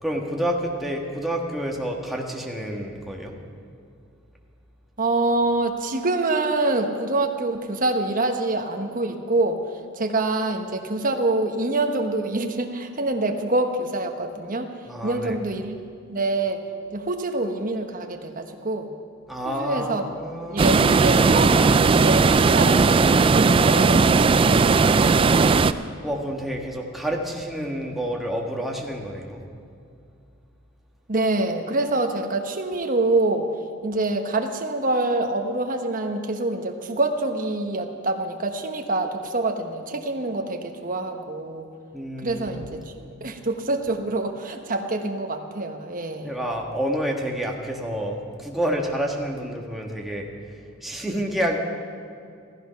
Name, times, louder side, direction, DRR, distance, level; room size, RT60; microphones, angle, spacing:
voice 1, 0.0-3.3 14.9-15.4 19.3-21.2 25.7-29.4 41.9-43.2 46.2-50.3 50.8-51.6, equal, ahead, -1 dB, 1.4 m, -29 dB
voice 2, 5.0-9.6 9.9-14.7 15.0-15.8 16.1-16.6 16.9-18.9 19.4-20.1 20.4-21.6 22.0-25.4 31.1-33.5 33.8-41.7 42.2-42.8 43.2-46.4, right 2 dB, 40° right, 4 dB, 1.2 m, -26 dB
sound 1, 20.6-25.7, right 4 dB, 25° right, 0.3 m, -17 dB
14.5 x 14.5 x 5.7 m, 2.5 s
head